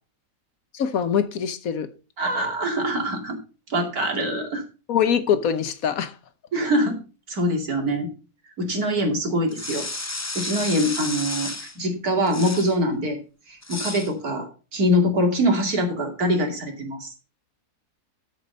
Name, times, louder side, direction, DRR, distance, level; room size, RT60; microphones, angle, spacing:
voice 1, 0.7-1.9 4.9-6.1, left 8 dB, 65° left, 1.3 m, -23 dB
voice 2, 2.2-3.4 3.7-4.6 6.5-7.0 7.3-8.1 8.6-9.9 10.3-13.2 13.5-14.5 14.7-17.1, equal, 70° right, 3.0 m, -24 dB
sound 1, 9.5-11.8 12.3-12.8 13.6-14.1, left 2 dB, 25° left, 0.3 m, -32 dB
13.0 x 5.2 x 5.4 m
omnidirectional pair, 1.6 m